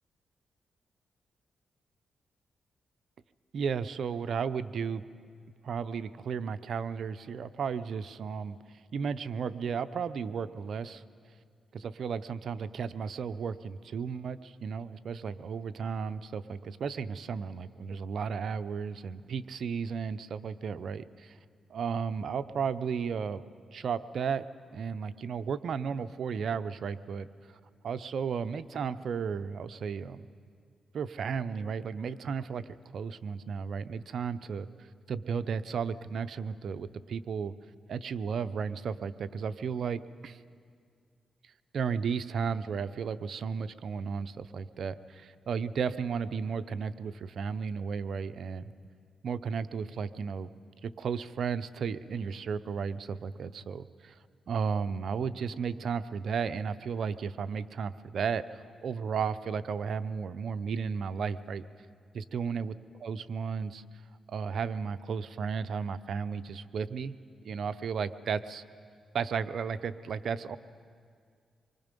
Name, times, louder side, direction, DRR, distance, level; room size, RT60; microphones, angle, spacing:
voice 1, 3.5-5.0 5.6-8.6 8.9-11.0 11.7-21.4 21.7-23.4 23.7-24.4 24.7-27.3 27.8-30.3 30.9-32.6 32.9-34.7 35.1-37.5 37.9-40.4 41.7-48.7 49.2-50.5 50.8-54.2 54.5-61.6 62.1-62.7 63.0-63.8 64.3-67.1 67.4-68.6 69.1-70.6, right 6 dB, 70° right, 12 dB, 0.6 m, -34 dB
26.0 x 23.5 x 5.3 m, 2.1 s
cardioid pair, 75°, 0 cm